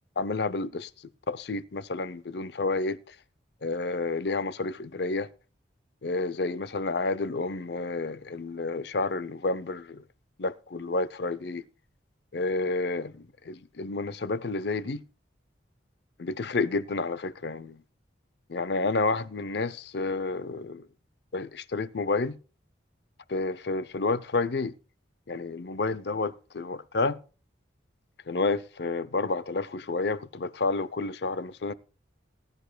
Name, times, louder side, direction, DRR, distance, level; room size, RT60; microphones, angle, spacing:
voice 1, 0.2-0.9 1.3-3.0 3.6-5.3 6.0-10.0 10.4-11.6 12.3-13.1 13.5-15.0 16.2-17.8 18.5-20.8 21.3-22.4 23.3-24.7 25.3-27.2 28.3-31.7, left 3 dB, 65° left, 0.6 m, -30 dB
19.5 x 10.5 x 2.3 m
head